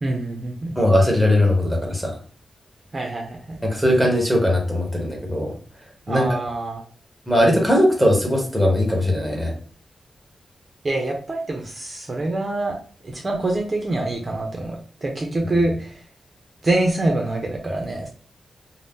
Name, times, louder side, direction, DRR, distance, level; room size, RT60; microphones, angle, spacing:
voice 1, 0.0-0.7 2.9-3.6 6.1-6.8 10.8-12.7 13.0-16.0 16.6-18.1, right 2 dB, 30° right, 1 dB, 0.5 m, -25 dB
voice 2, 0.7-2.1 3.6-5.5 6.1-6.3 7.3-9.5, left 1 dB, ahead, 0 dB, 0.8 m, -19 dB
2.6 x 2.0 x 3.5 m, 0.41 s
wide cardioid pair, 135°, 0 cm